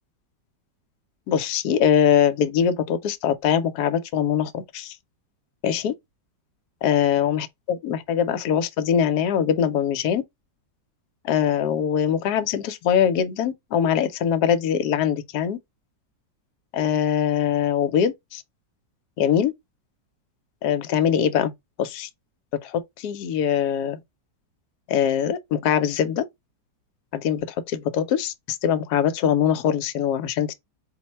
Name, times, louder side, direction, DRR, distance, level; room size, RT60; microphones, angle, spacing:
voice 1, 1.3-5.0 5.6-5.9 6.8-10.2 11.2-15.6 16.7-18.4 19.2-19.5 20.6-21.5 21.8-22.1 22.6-24.0 24.9-26.2 27.1-30.5, left 8 dB, 70° left, 1.1 m, -22 dB
4.2 x 2.1 x 4.2 m
omnidirectional pair, 1.9 m